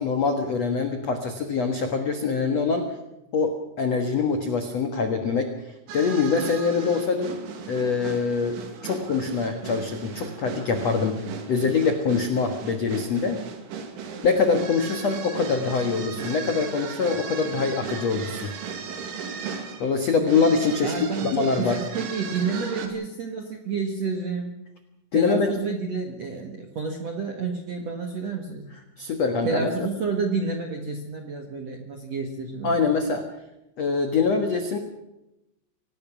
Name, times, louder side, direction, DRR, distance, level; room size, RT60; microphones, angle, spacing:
voice 1, 0.0-2.9 3.3-5.5 5.9-7.4 7.7-11.2 11.5-13.4 14.2-18.5 19.8-21.8 25.1-25.5 29.0-29.9 32.6-33.3 33.8-34.8, left 5 dB, 65° left, 5 dB, 1.6 m, -24 dB
sound 1, 5.9-22.9, right 6 dB, 80° right, 4.6 m, -36 dB
voice 2, 20.8-24.5 25.1-28.7 29.4-32.8, right 4 dB, 60° right, 3 dB, 1.8 m, -30 dB
25.5 x 18.0 x 6.1 m, 0.92 s
omnidirectional pair, 5.4 m